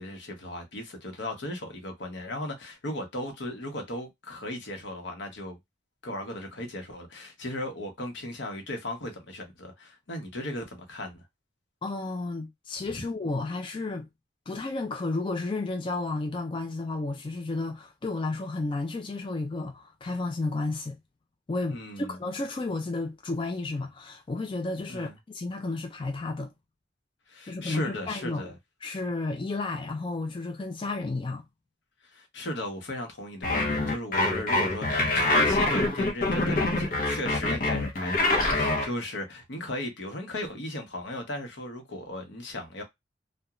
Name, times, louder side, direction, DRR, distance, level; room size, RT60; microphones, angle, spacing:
voice 1, 0.0-5.6 6.0-11.2 12.9-13.0 21.7-22.1 24.9-25.1 27.3-28.5 32.1-42.8, left 1 dB, 75° left, 0.9 m, -36 dB
voice 2, 11.8-14.1 14.5-21.0 21.5-26.5 27.5-28.5 28.8-31.4, left 3 dB, 30° left, 0.3 m, -32 dB
sound 1, 33.4-38.9, left 2 dB, 50° left, 0.8 m, -25 dB
2.9 x 2.2 x 2.4 m
head